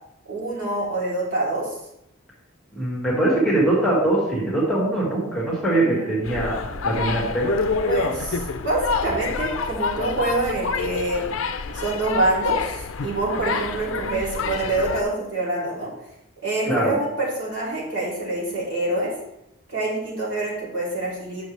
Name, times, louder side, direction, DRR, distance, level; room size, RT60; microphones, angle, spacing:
voice 1, 0.3-1.8 5.7-6.1 7.8-11.3 11.7-15.9 16.4-19.2 19.7-21.4, right 2 dB, 55° right, -7 dB, 3.3 m, -26 dB
voice 2, 2.7-7.5 16.6-16.9, right 1 dB, 5° left, -6 dB, 2.0 m, -22 dB
sound 1, 6.2-15.0, left 4 dB, 70° left, 0.5 m, -27 dB
9.0 x 6.1 x 3.3 m, 0.84 s
head